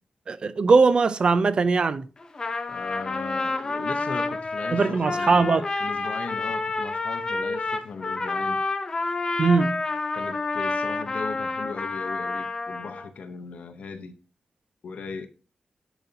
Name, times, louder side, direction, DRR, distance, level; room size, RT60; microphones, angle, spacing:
voice 1, 0.3-2.1 4.7-5.7 9.4-9.9, right 4 dB, 40° right, 0.4 m, -20 dB
Trumpet, 2.2-13.1, left 3 dB, 30° left, 0.6 m, -29 dB
voice 2, 2.7-5.5 5.8-8.6 10.1-14.1 14.8-15.3, left 5 dB, 70° left, 0.8 m, -38 dB
10.0 x 4.1 x 2.7 m
wide cardioid pair, 170°, 2 cm